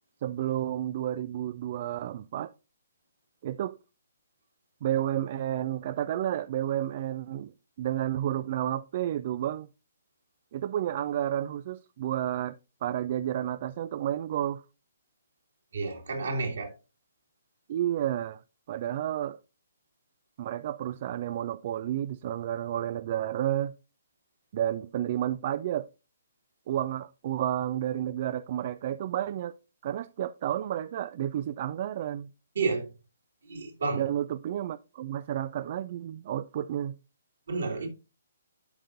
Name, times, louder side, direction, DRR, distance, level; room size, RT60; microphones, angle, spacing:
voice 1, 0.2-2.5 3.4-3.8 4.8-7.5 7.8-9.7 10.5-12.5 12.8-14.6 17.7-18.4 18.7-19.4 20.4-23.7 24.5-25.9 26.7-29.6 29.8-32.3 33.9-36.9, right 11 dB, 40° right, 0.3 m, -31 dB
voice 2, 15.7-16.7 32.6-32.9 33.5-34.0 37.5-37.9, right 4 dB, 60° right, 2.3 m, -30 dB
12.0 x 5.0 x 2.6 m
figure-of-eight pair, 130°, 0 cm